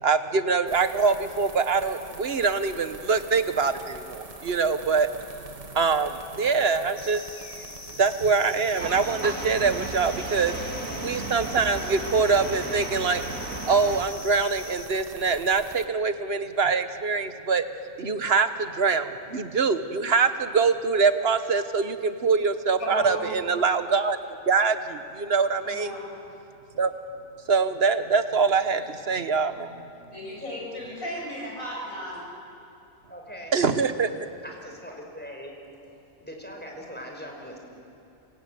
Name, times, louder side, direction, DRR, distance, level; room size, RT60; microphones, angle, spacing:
voice 1, 0.0-5.1 5.7-7.2 8.0-10.5 11.0-13.2 13.7-17.6 18.0-25.9 26.8-26.9 27.5-29.9 33.5-34.1, right 5 dB, 50° right, 10 dB, 1.4 m, -24 dB
sound 1, 0.7-15.9, right 3 dB, 30° right, 1.3 m, -45 dB
sound 2, 7.0-14.9, left 2 dB, 45° left, 2.7 m, -42 dB
sound 3, 8.8-14.0, right 3 dB, 80° right, 2.8 m, -34 dB
voice 2, 22.8-23.3 25.6-26.1 28.8-28.9 30.1-32.3, equal, 90° left, -3 dB, 8.6 m, -35 dB
voice 3, 33.1-33.5 34.4-35.6 36.2-37.6, equal, 5° left, 0 dB, 5.2 m, -40 dB
27.0 x 23.5 x 9.4 m, 2.8 s
omnidirectional pair, 1.4 m